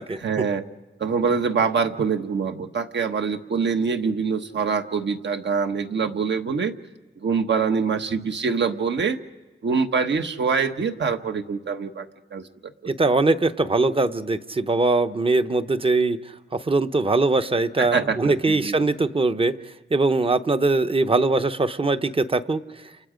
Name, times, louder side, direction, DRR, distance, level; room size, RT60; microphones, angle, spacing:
voice 1, 0.2-0.6 1.0-6.7 7.2-9.2 9.6-12.9 17.8-18.8, right 5 dB, 65° right, 7 dB, 1.3 m, -25 dB
voice 2, 12.9-16.2 16.5-19.5 19.9-22.6, right 3 dB, 30° right, 10 dB, 0.8 m, -21 dB
30.0 x 29.0 x 5.1 m, 1.2 s
wide cardioid pair, 115°, 20 cm